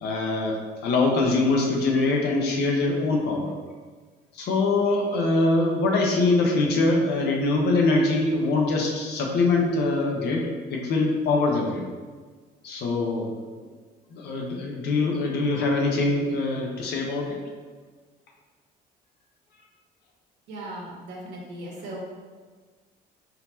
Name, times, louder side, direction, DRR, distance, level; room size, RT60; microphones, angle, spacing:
voice 1, 0.0-3.5 4.3-11.8 12.6-13.4 14.1-17.4, left 3 dB, 75° left, 0 dB, 0.9 m, -23 dB
voice 2, 20.5-22.0, right 1 dB, 85° right, -3 dB, 1.3 m, -37 dB
4.2 x 4.1 x 2.7 m, 1.5 s
cardioid pair, 110°, 17 cm